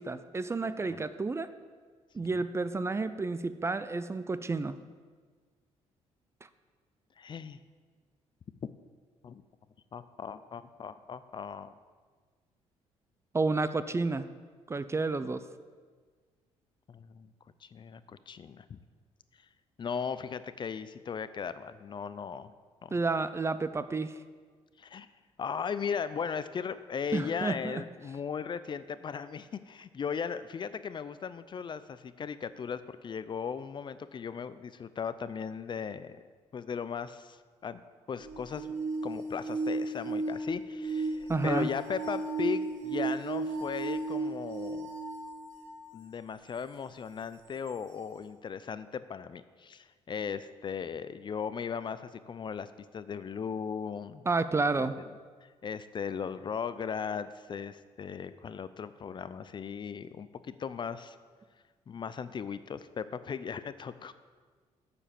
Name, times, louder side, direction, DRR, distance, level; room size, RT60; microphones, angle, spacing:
voice 1, 0.0-1.5 2.1-4.8 13.3-14.3 14.7-15.4 22.9-24.1 27.1-27.8 41.3-41.7 54.3-55.0, right 3 dB, 20° right, 13 dB, 0.5 m, -30 dB
voice 2, 7.2-7.6 9.2-9.4 9.9-11.7 16.9-17.3 17.6-18.8 19.8-22.5 22.8-22.9 24.8-25.1 25.4-36.2 36.5-37.4 37.6-37.8 38.1-38.7 39.0-44.9 45.9-54.3 54.8-54.9 55.4-61.2 61.9-64.1, left 6 dB, 40° left, 14 dB, 0.5 m, -37 dB
sound 1, 38.2-45.9 46.6-46.7 47.7-47.8, right 3 dB, 80° right, 2.0 m, -34 dB
7.1 x 6.7 x 7.6 m, 1.5 s
cardioid pair, 80°, 12 cm